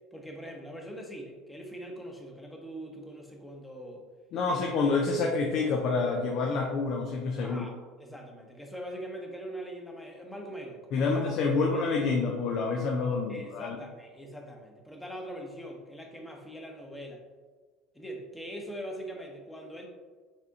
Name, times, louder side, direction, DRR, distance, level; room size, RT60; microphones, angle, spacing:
voice 1, 0.1-4.0 4.5-4.6 7.4-11.3 11.6-12.1 13.3-17.2 17.9-19.9, equal, 10° left, 1 dB, 1.0 m, -42 dB
voice 2, 4.3-7.6 10.9-13.8, left 4 dB, 55° left, 0 dB, 0.6 m, -28 dB
4.8 x 3.5 x 2.8 m, 1.4 s
hypercardioid pair, 70°, 0 cm